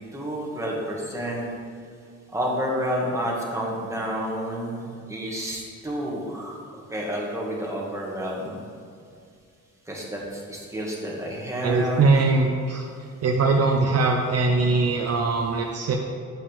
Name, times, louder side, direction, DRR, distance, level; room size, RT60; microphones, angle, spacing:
voice 1, 0.1-1.4 2.3-6.6 6.9-8.6 9.9-12.0, equal, 10° right, -3 dB, 1.7 m, -30 dB
voice 2, 11.6-12.8 13.2-16.0, right 3 dB, 55° right, 1 dB, 0.7 m, -21 dB
9.1 x 5.6 x 3.4 m, 2.3 s
cardioid pair, 90°, 30 cm